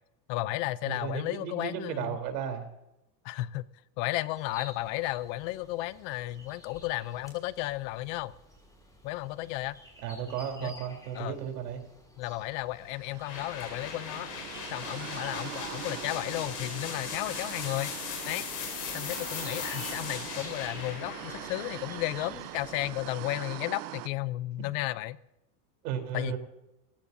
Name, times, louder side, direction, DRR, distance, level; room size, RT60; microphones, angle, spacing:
voice 1, 0.3-2.2 3.2-3.6 4.0-8.3 9.0-9.8 10.6-10.7 11.1-11.4 12.2-14.3 14.7-17.9 18.3-18.5 18.9-25.2 26.1-26.4, left 17 dB, 50° left, 17 dB, 0.7 m, -33 dB
voice 2, 0.8-2.6 10.0-11.8 25.8-26.4, right 8 dB, 85° right, 5 dB, 3.9 m, -34 dB
sound 1, 4.4-23.1, left 1 dB, 5° left, 6.0 m, -53 dB
sound 2, 12.8-24.1, right 17 dB, 65° right, 0.9 m, -42 dB
sound 3, 13.3-23.0, left 7 dB, 85° left, 5.8 m, -39 dB
27.5 x 16.0 x 2.8 m, 0.89 s
supercardioid pair, 140°, 48 cm